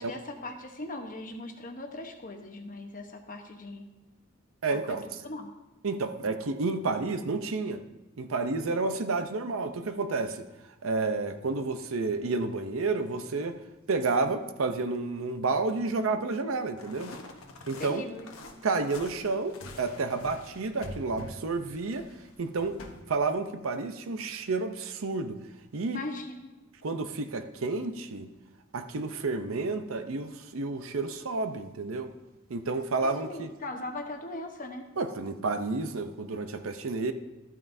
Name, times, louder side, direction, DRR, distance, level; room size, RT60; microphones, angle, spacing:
voice 1, 0.0-3.9 4.7-5.5 17.8-18.3 25.9-26.5 33.0-34.9, left 2 dB, 40° left, 4 dB, 1.0 m, -39 dB
voice 2, 4.6-5.1 5.8-7.8 8.2-10.5 10.8-13.6 13.9-17.2 17.7-18.0 18.6-22.1 22.4-22.8 23.1-25.4 25.7-26.0 26.8-28.3 28.7-32.1 32.5-33.5 35.0-37.1, right 3 dB, 70° right, 8 dB, 0.6 m, -30 dB
sound 1, 16.8-23.0, left 2 dB, 80° left, 1.0 m, -46 dB
13.0 x 9.0 x 2.7 m, 1.0 s
head